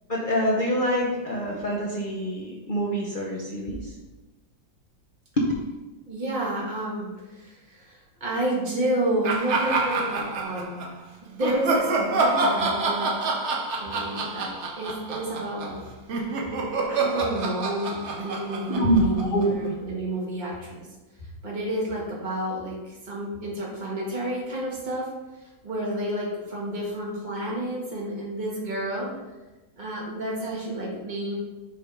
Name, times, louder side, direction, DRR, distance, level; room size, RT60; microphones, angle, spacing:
voice 1, 0.1-3.9 5.4-5.5 18.7-19.5, equal, 80° left, -3 dB, 0.4 m, -25 dB
voice 2, 6.1-10.9 11.2-13.4 13.8-15.8 16.9-20.9 21.2-29.1 29.8-31.3, right 1 dB, 25° right, -4 dB, 1.5 m, -30 dB
sound 1, 9.2-10.9 11.4-19.7, right 3 dB, 75° right, 0.6 m, -27 dB
6.7 x 3.4 x 4.9 m, 1.1 s
omnidirectional pair, 2.1 m